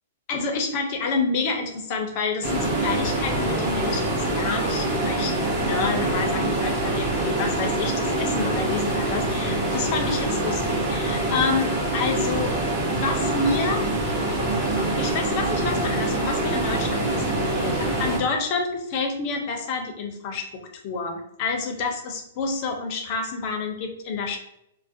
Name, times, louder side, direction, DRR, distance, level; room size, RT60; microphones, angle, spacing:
voice 1, 0.3-12.5 12.9-14.3 14.8-24.4, left 4 dB, 40° left, 4 dB, 0.5 m, -29 dB
sound 1, 2.4-18.2, right 2 dB, 25° right, 0.8 m, -25 dB
2.4 x 2.0 x 2.6 m, 0.80 s
hypercardioid pair, 145°, 0 cm